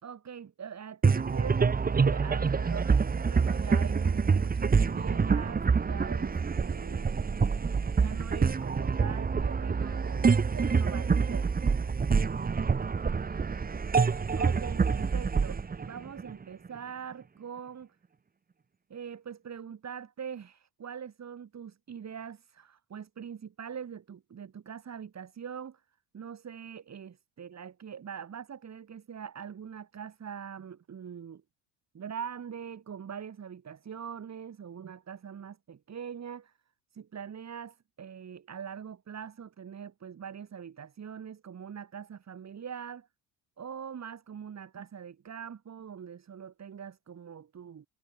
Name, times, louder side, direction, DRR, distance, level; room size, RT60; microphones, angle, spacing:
voice 1, 0.0-7.2 8.0-11.5 14.3-18.0 18.9-25.8 26.1-31.4 31.9-36.5 36.9-43.1 43.6-47.9, right 7 dB, 35° right, 3.8 m, -43 dB
sound 1, 1.0-16.7, right 5 dB, 20° right, 1.3 m, -26 dB
supercardioid pair, 100°, 48 cm